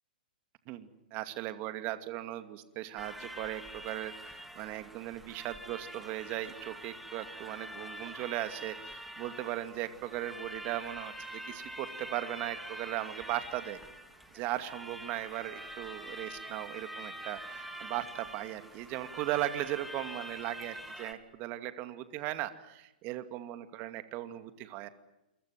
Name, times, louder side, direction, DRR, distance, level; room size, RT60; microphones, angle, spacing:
voice 1, 0.7-13.8 14.3-24.9, right 14 dB, 35° right, 9 dB, 2.5 m, -38 dB
sound 1, 3.0-21.1, right 1 dB, ahead, 3.3 m, -45 dB
28.5 x 24.0 x 7.6 m, 0.91 s
hypercardioid pair, 120°, 5 cm